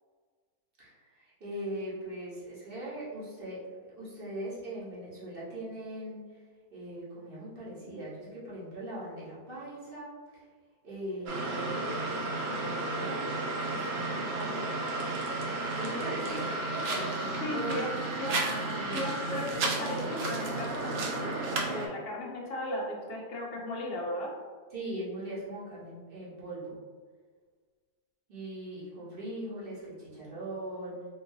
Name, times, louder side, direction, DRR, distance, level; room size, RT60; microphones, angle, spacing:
voice 1, 0.8-6.4 6.7-10.5 10.8-13.2 13.7-14.7 15.7-19.4 24.7-26.8 28.3-31.1, right 1 dB, 40° right, -8 dB, 1.2 m, -40 dB
sound 1, 11.3-21.9, right 2 dB, 65° right, 0.6 m, -33 dB
voice 2, 17.4-17.9 18.2-18.4 18.9-21.4 21.7-24.3, left 1 dB, 65° left, -2 dB, 0.6 m, -36 dB
3.7 x 2.6 x 2.7 m, 1.5 s
omnidirectional pair, 1.6 m